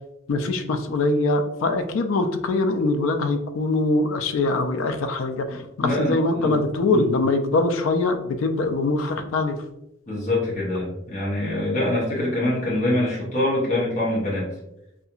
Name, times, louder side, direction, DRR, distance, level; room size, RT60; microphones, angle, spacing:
voice 1, 0.3-9.6, left 2 dB, 75° left, 7 dB, 0.4 m, -23 dB
voice 2, 5.8-6.6 6.9-7.1 10.1-14.5, left 1 dB, 40° left, -6 dB, 0.9 m, -24 dB
2.7 x 2.4 x 2.3 m, 0.85 s
head